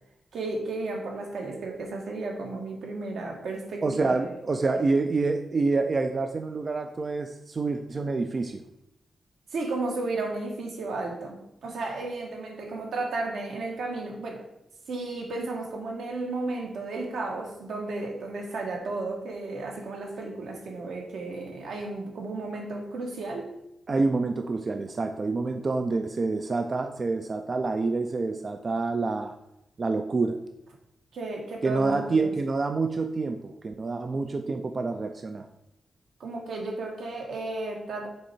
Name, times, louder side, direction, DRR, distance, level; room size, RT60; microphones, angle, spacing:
voice 1, 0.3-4.3 4.7-4.8 9.5-14.4 14.9-23.5 31.1-32.3 36.2-38.1, right 2 dB, 80° right, 1 dB, 1.4 m, -33 dB
voice 2, 3.8-8.6 23.9-29.3 29.8-30.4 31.6-35.5, right 3 dB, 35° right, 6 dB, 0.4 m, -27 dB
6.3 x 4.1 x 4.4 m, 0.86 s
wide cardioid pair, 145°, 0 cm